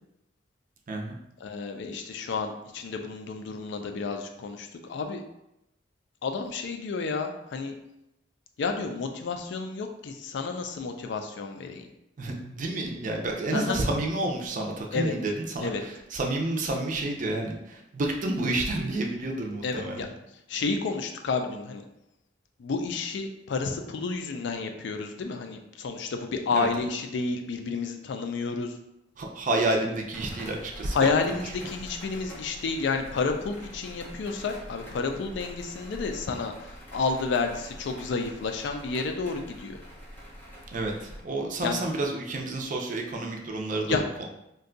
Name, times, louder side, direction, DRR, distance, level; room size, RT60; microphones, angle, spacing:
voice 1, 1.4-5.2 6.2-7.7 8.6-11.9 13.5-13.8 14.9-15.1 15.6-15.8 19.6-20.1 20.5-21.8 22.6-28.7 30.9-39.8 41.6-41.8 43.9-44.0, left 4 dB, 65° left, 5 dB, 0.4 m, -30 dB
voice 2, 12.2-20.1 26.5-26.7 29.2-31.3 40.7-44.3, right 2 dB, 45° right, 1 dB, 0.5 m, -30 dB
sound 1, 30.1-41.2, equal, 10° left, 0.7 m, -45 dB
2.5 x 2.2 x 3.7 m, 0.85 s
head